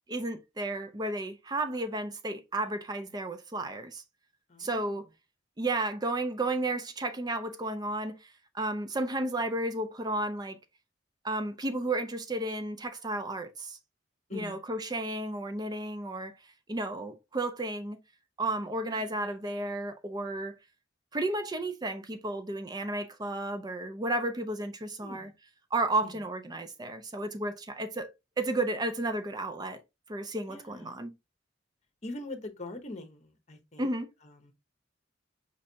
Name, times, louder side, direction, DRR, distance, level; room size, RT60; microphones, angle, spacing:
voice 1, 0.1-4.0 4.6-5.1 5.6-10.6 11.2-13.8 14.3-16.3 16.7-18.0 18.4-20.6 21.1-25.3 25.7-28.1 28.4-29.8 30.1-31.1 33.8-34.1, right 2 dB, 20° right, 0.4 m, -33 dB
voice 2, 4.5-5.1 14.3-14.6 18.8-19.2 25.0-25.3 26.0-26.2 30.5-31.0 32.0-33.9 34.2-34.5, left 2 dB, 35° left, 1.0 m, -43 dB
5.2 x 3.2 x 2.7 m
head